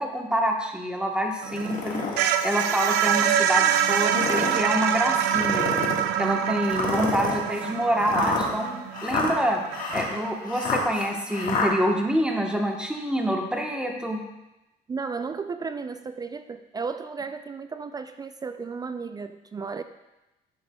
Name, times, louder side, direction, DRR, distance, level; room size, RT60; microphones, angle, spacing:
voice 1, 0.0-2.0 2.4-5.7 6.2-9.6 9.9-14.2, equal, 5° right, 1 dB, 1.1 m, -26 dB
sound 1, 1.4-10.3, right 9 dB, 85° right, 0.5 m, -25 dB
sound 2, 1.5-2.2 2.8-2.9 3.9-4.6 5.3-6.1 6.7-11.7, left 4 dB, 55° left, 1.6 m, -29 dB
voice 2, 14.9-19.8, right 5 dB, 25° right, 9 dB, 0.3 m, -34 dB
10.5 x 6.8 x 2.3 m, 0.97 s
cardioid pair, 110°, 17 cm